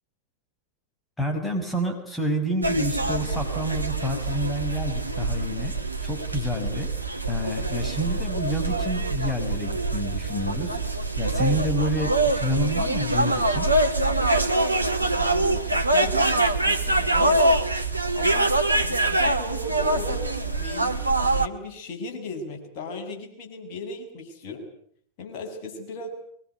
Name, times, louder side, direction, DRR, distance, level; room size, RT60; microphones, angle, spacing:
voice 1, 1.2-5.8 6.0-6.9 7.3-13.7, equal, 10° left, 4 dB, 6.2 m, -28 dB
sound 1, 2.6-21.5, right 2 dB, 85° right, 1.8 m, -24 dB
voice 2, 15.0-17.5 18.1-18.5 18.8-24.6 25.2-26.1, left 2 dB, 45° left, 3 dB, 7.0 m, -37 dB
24.0 x 23.0 x 9.6 m, 0.65 s
figure-of-eight pair, 90°, 0 cm